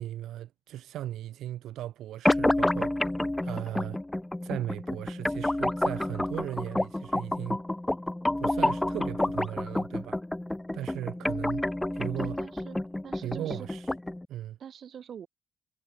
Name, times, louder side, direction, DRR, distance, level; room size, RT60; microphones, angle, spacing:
voice 1, 0.0-3.0 3.4-4.0 4.4-7.6 8.4-10.2 10.7-11.6 11.9-12.4 13.2-13.9 14.3-14.6, right 13 dB, 80° right, 4.2 m, -37 dB
sound 1, 2.3-14.3, left 1 dB, 10° left, 0.6 m, -29 dB
voice 2, 12.2-12.8 13.0-13.7 14.6-15.3, right 8 dB, 55° right, 7.3 m, -44 dB
cardioid pair, 90°, 0 cm